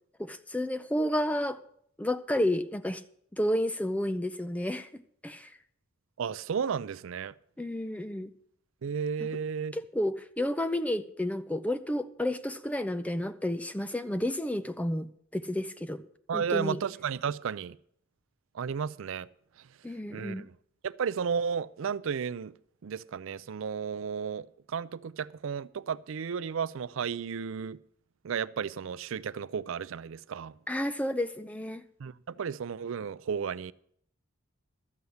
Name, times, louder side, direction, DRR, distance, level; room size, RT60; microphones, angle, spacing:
voice 1, 0.2-1.6 2.0-3.0 3.3-5.5 7.6-8.3 9.2-9.3 9.7-16.0 16.3-16.8 19.8-20.5 30.7-31.8, left 1 dB, 5° left, 0.4 m, -31 dB
voice 2, 6.2-7.3 8.8-9.7 16.3-17.8 18.5-19.3 20.1-20.5 20.8-22.5 22.8-27.8 28.2-30.5 32.0-33.7, right 6 dB, 65° right, 0.4 m, -33 dB
12.5 x 7.9 x 7.0 m
head